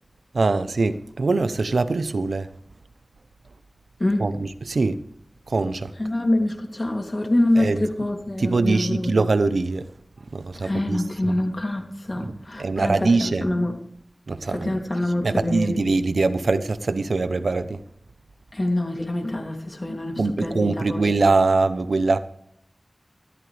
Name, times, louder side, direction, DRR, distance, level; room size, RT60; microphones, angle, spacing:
voice 1, 0.3-2.5 4.2-5.0 5.5-5.9 7.6-7.9 8.4-9.9 10.3-11.4 12.2-13.5 14.3-14.8 15.2-17.8 20.2-22.2, right 3 dB, 85° right, 0.8 m, -23 dB
voice 2, 6.0-9.1 10.5-13.7 14.5-15.8 18.5-21.1, left 1 dB, 35° left, 2.9 m, -25 dB
19.0 x 13.5 x 3.4 m
wide cardioid pair, 60°, 0 cm